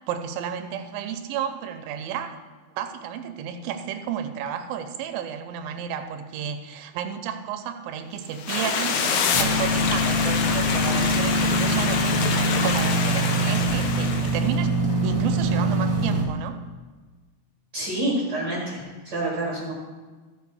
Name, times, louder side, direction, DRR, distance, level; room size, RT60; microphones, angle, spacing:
voice 1, 0.1-2.4 2.8-12.4 12.6-14.7 15.0-16.6, right 8 dB, 90° right, 8 dB, 2.4 m, -32 dB
sound 1, 8.3-10.5, left 7 dB, 90° left, 2.7 m, -28 dB
Stream, 8.5-14.6, left 5 dB, 70° left, 1.9 m, -27 dB
sound 2, 9.3-16.2, right 1 dB, 15° right, 1.8 m, -24 dB
voice 2, 17.7-19.7, right 1 dB, 40° right, -4 dB, 1.7 m, -28 dB
14.5 x 5.2 x 4.8 m, 1.3 s
omnidirectional pair, 4.1 m